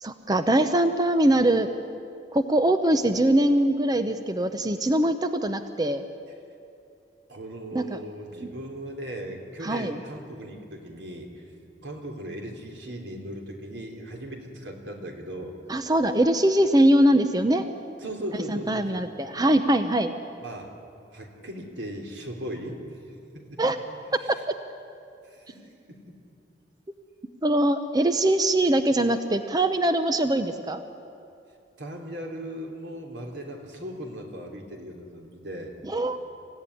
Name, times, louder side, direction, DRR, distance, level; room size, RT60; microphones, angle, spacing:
voice 1, 0.0-1.7 2.3-6.0 7.7-8.0 9.6-10.0 15.7-17.6 18.5-20.1 23.6-23.8 27.4-30.8 35.8-36.2, right 1 dB, 20° right, 9 dB, 0.8 m, -22 dB
voice 2, 7.3-11.4 11.8-15.6 18.0-19.1 20.4-20.7 21.1-22.8 23.3-23.6 24.2-24.3 25.3-25.6 26.1-26.2 31.8-35.8, right 1 dB, 80° right, 2 dB, 3.3 m, -38 dB
25.5 x 16.0 x 9.9 m, 2.6 s
head